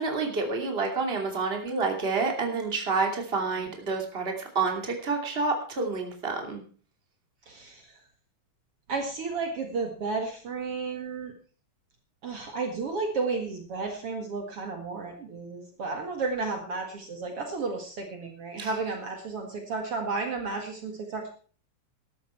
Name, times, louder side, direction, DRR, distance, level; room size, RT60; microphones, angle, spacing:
voice 1, 0.0-6.6 18.6-18.7, right 4 dB, 20° right, 2 dB, 2.8 m, -28 dB
voice 2, 7.5-7.9 8.9-11.3 12.2-21.3, right 4 dB, 55° right, 3 dB, 2.7 m, -32 dB
14.0 x 12.5 x 4.5 m, 0.41 s
omnidirectional pair, 3.3 m